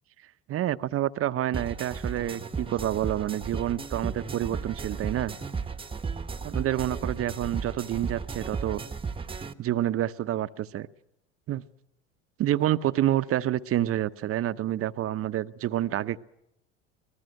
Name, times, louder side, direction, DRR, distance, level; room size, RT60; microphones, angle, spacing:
voice 1, 0.5-5.3 6.4-8.8 9.6-10.9 11.5-11.6 12.4-16.2, right 13 dB, 40° right, 14 dB, 0.8 m, -28 dB
sound 1, 1.5-9.5, right 5 dB, 15° right, 1.1 m, -35 dB
24.5 x 19.0 x 6.5 m, 0.83 s
hypercardioid pair, 80°, 35 cm